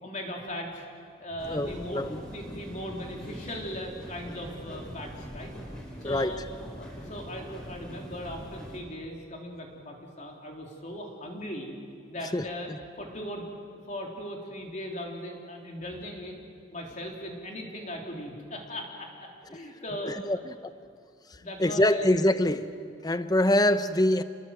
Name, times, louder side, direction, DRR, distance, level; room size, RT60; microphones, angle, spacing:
voice 1, 0.0-0.8 1.2-5.5 6.0-6.4 6.8-11.7 12.1-12.7 13.0-13.4 13.9-20.4 21.4-22.1, equal, 40° left, 0 dB, 3.4 m, -38 dB
sound 1, 1.4-8.8, equal, 5° left, 5.0 m, -42 dB
voice 2, 1.5-2.2 6.0-6.4 12.3-12.8 20.0-20.7 21.6-22.7 23.0-24.2, left 1 dB, 20° left, 11 dB, 0.7 m, -25 dB
29.0 x 20.5 x 7.8 m, 2.3 s
head